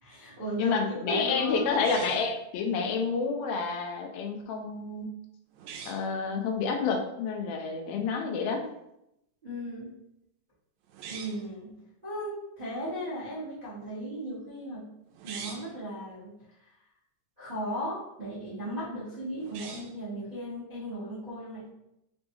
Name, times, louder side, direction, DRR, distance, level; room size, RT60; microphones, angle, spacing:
voice 1, 0.0-1.7 9.4-9.9 11.1-11.7 12.0-14.9 15.2-16.3 17.4-21.7, equal, 60° right, -11 dB, 0.4 m, -36 dB
voice 2, 0.6-5.1 5.8-8.6, left 5 dB, 85° left, 3 dB, 1.6 m, -29 dB
sound 1, 1.8-2.4 5.5-6.1 10.9-11.5 15.1-15.8 19.4-20.0, right 6 dB, 80° right, 1.8 m, -42 dB
5.1 x 2.3 x 3.0 m, 0.83 s
omnidirectional pair, 3.7 m